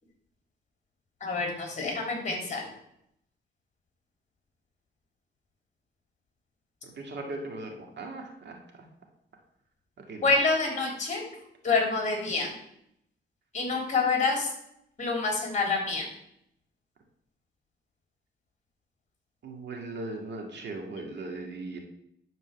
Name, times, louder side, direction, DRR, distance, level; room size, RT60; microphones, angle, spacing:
voice 1, 1.2-2.6 10.2-11.2 11.6-12.5 13.5-14.5 15.0-16.0, left 3 dB, 40° left, 1 dB, 3.3 m, -27 dB
voice 2, 6.8-8.5 10.1-10.3 19.4-21.8, right 2 dB, 65° right, 2 dB, 2.2 m, -38 dB
11.5 x 4.5 x 7.1 m, 0.76 s
cardioid pair, 115°, 20 cm